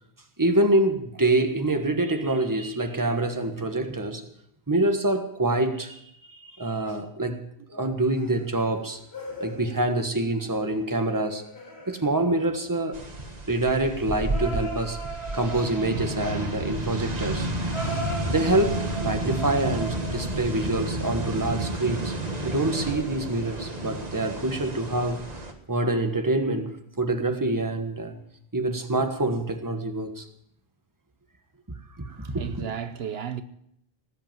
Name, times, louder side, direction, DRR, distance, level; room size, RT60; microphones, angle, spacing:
voice 1, 0.4-4.3 4.7-6.0 6.3-7.4 7.7-9.0 9.4-11.4 11.9-13.0 13.5-15.0 15.3-17.5 18.3-22.1 22.4-25.2 25.7-28.2 28.5-30.3 32.0-32.1 32.3-32.6, right 2 dB, 20° right, 1.4 m, -26 dB
sound 1, 8.1-13.3 14.3-20.8 22.1-23.8 24.2-24.4 25.2-25.3, right 2 dB, 75° left, 3.0 m, -40 dB
sound 2, 12.9-25.5, right 1 dB, 40° right, 1.7 m, -31 dB
Fart, 23.4-24.0 25.3-25.5, equal, 15° left, 5.5 m, -51 dB
voice 2, 32.0-33.4, right 8 dB, 75° right, 1.0 m, -34 dB
19.0 x 8.2 x 7.6 m
omnidirectional pair, 1.1 m